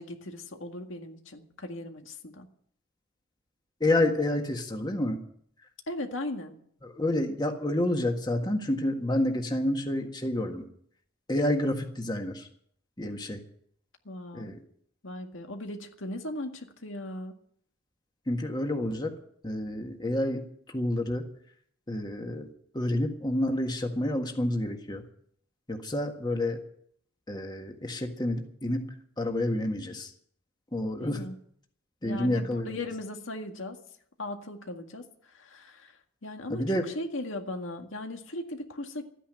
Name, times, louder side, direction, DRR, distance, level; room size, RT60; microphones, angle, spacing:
voice 1, 0.0-2.5 5.9-6.5 14.1-14.5 15.0-17.3 31.0-31.4 32.0-33.8 34.2-39.0, left 1 dB, 80° left, 4 dB, 1.9 m, -38 dB
voice 2, 3.8-5.2 6.8-10.7 11.3-12.5 13.0-13.4 14.3-14.6 18.3-19.1 19.4-21.2 21.9-22.5 22.7-25.0 25.7-26.6 27.3-28.8 29.2-30.1 30.7-31.2 32.0-32.7 36.5-36.8, left 1 dB, 20° left, 4 dB, 1.7 m, -29 dB
13.5 x 10.0 x 9.0 m, 0.64 s
head